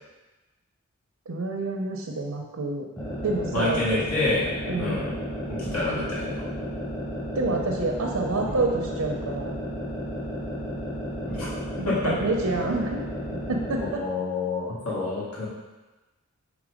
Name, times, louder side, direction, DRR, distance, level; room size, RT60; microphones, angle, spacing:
voice 1, 1.3-2.9 3.2-4.0 4.7-5.1 7.3-9.6 11.8-13.1 13.5-14.0, right 3 dB, 90° right, 0 dB, 0.6 m, -28 dB
sound 1, 3.0-14.0, equal, 15° left, 0.9 m, -33 dB
voice 2, 3.5-5.1 5.7-6.4 11.3-11.5 11.8-12.1 13.8-15.5, left 3 dB, 80° left, -8 dB, 2.1 m, -28 dB
6.1 x 3.4 x 5.0 m, 1.1 s
head